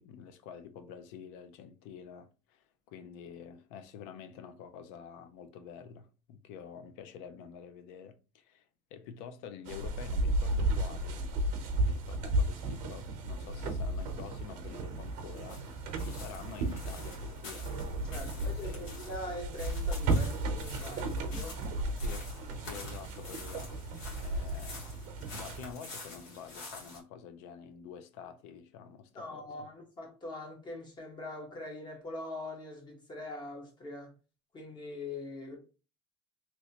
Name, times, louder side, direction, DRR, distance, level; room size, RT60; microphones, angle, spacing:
voice 1, 0.0-11.2 11.6-15.6 16.0-17.7 18.0-18.8 22.0-22.3 22.7-23.7 24.1-24.9 25.3-29.7, left 7 dB, 80° left, 0.6 m, -48 dB
sound 1, 9.6-25.7, right 2 dB, 65° right, 0.8 m, -34 dB
sound 2, 13.3-27.0, left 2 dB, 65° left, 1.7 m, -49 dB
voice 2, 18.1-21.6 29.1-34.1 34.5-35.6, left 2 dB, 30° left, 1.3 m, -42 dB
3.0 x 2.8 x 2.9 m
cardioid pair, 130°, 15 cm